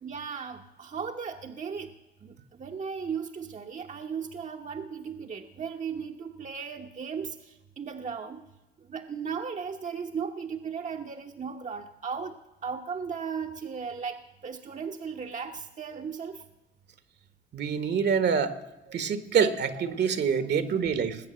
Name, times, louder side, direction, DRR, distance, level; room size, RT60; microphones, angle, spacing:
voice 1, 0.0-1.9 2.2-8.4 8.8-16.4, right 6 dB, 40° right, 4 dB, 1.0 m, -36 dB
voice 2, 17.5-18.6 18.9-21.2, right 6 dB, 60° right, 12 dB, 1.4 m, -26 dB
19.5 x 8.1 x 7.6 m, 1.0 s
cardioid pair, 90°, 20 cm